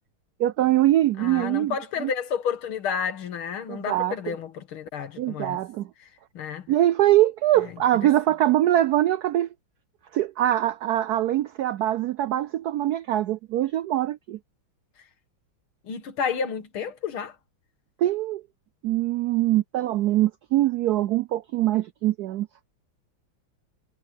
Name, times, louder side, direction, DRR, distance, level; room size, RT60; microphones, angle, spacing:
voice 1, 0.4-1.7 2.0-2.1 3.7-4.3 5.2-5.9 6.7-9.5 10.1-14.4 18.0-18.4 18.8-22.5, right 13 dB, 90° right, 0.8 m, -23 dB
voice 2, 1.2-5.6 6.3-6.7 7.6-7.7 8.0-8.1 15.8-17.4, left 7 dB, 85° left, 2.4 m, -31 dB
omnidirectional pair, 2.3 m